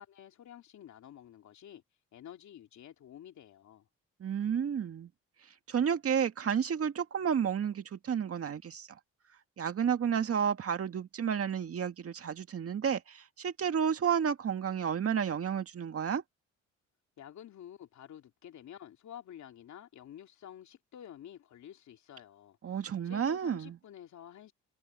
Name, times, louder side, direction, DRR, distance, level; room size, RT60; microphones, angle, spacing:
voice 1, 0.0-1.8 2.1-3.9 17.2-24.5, left 10 dB, 65° left, 2.8 m, -50 dB
voice 2, 4.2-5.1 5.7-9.0 9.6-16.2 22.6-23.8, right 7 dB, 50° right, 1.9 m, -31 dB
cardioid pair, 90°, 30 cm